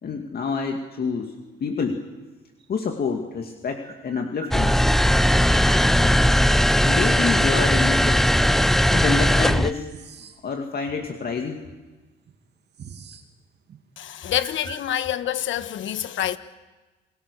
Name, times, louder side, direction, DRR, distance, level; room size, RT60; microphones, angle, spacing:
voice 1, 0.0-2.1 2.7-4.8 6.8-8.3 8.7-9.9 10.4-11.7, left 5 dB, 50° left, 2.4 m, -28 dB
sound 1, 2.6-2.7 3.8-5.9 6.8-7.3 8.4-8.5 9.1-10.6 10.8-11.0 11.8-11.9 12.2-13.3 13.6-13.8 14.3-14.9, right 6 dB, 60° right, 2.5 m, -42 dB
sound 2, 4.5-9.7, equal, ahead, 0.7 m, -18 dB
voice 2, 14.0-16.4, left 11 dB, 75° left, 1.3 m, -27 dB
29.0 x 21.5 x 6.9 m
cardioid pair, 90°, 20 cm